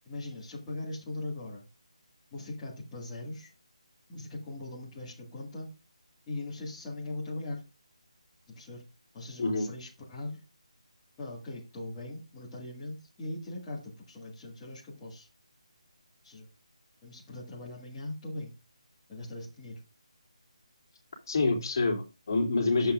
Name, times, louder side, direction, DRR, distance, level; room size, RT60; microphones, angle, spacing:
voice 1, 0.1-1.7 2.3-3.5 4.1-5.7 6.3-7.6 8.5-8.8 9.1-10.4 11.2-15.3 16.2-16.5 17.0-18.5 19.1-19.8, left 2 dB, 10° left, -8 dB, 1.9 m, -40 dB
voice 2, 21.3-22.9, left 3 dB, 35° left, 2 dB, 2.9 m, -27 dB
11.5 x 7.9 x 2.5 m, 0.28 s
figure-of-eight pair, 170°, 4 cm